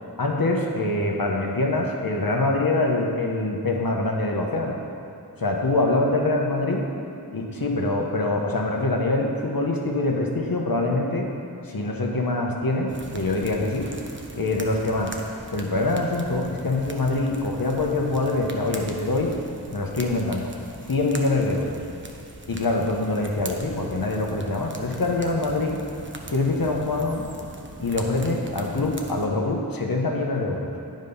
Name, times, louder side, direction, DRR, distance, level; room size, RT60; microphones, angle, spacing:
voice 1, 0.2-4.8 5.4-6.9 7.3-11.3 11.7-13.9 14.3-15.1 15.5-19.3 19.7-20.5 20.9-21.8 22.5-25.8 26.3-27.3 27.8-30.7, left 2 dB, 60° left, 0 dB, 1.1 m, -24 dB
sound 1, 12.9-29.3, right 2 dB, 30° right, 0.8 m, -41 dB
9.6 x 5.2 x 5.4 m, 2.7 s
wide cardioid pair, 70°, 39 cm